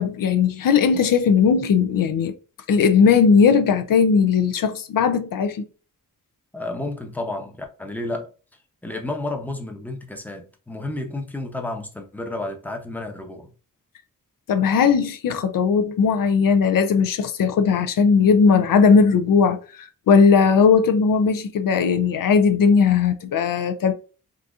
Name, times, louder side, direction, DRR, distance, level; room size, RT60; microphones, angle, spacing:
voice 1, 0.0-2.3 2.7-5.6 14.5-23.9, left 6 dB, 75° left, 0.5 m, -18 dB
voice 2, 6.5-8.3 8.8-13.5, left 2 dB, 5° left, 0.7 m, -31 dB
3.8 x 2.7 x 2.4 m
wide cardioid pair, 105°, 33 cm